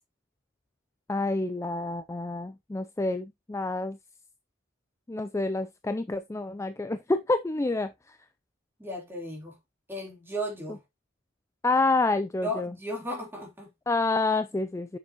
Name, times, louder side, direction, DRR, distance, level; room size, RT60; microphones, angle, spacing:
voice 1, 1.1-4.0 5.1-7.9 11.6-12.7 13.9-15.0, left 2 dB, 15° left, 0.4 m, -28 dB
voice 2, 8.8-9.6 9.9-10.8 12.4-13.7, equal, 10° right, 3.2 m, -35 dB
7.0 x 6.9 x 2.9 m
head